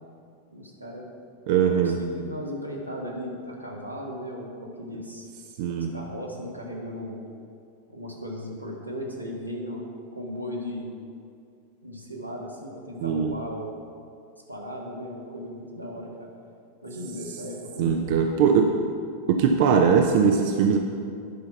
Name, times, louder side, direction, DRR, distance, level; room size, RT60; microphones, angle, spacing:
voice 1, 0.5-1.1 1.7-5.3 5.7-7.2 7.9-10.9 11.8-13.8 14.5-16.3 16.8-18.5 18.7-18.9, equal, 90° right, -2 dB, 1.6 m, -37 dB
voice 2, 1.5-2.0 5.6-5.9 13.0-13.3 17.8-18.7 19.3-20.8, right 6 dB, 50° right, 4 dB, 0.6 m, -21 dB
10.5 x 5.8 x 5.9 m, 2.3 s
figure-of-eight pair, 90°, 0 cm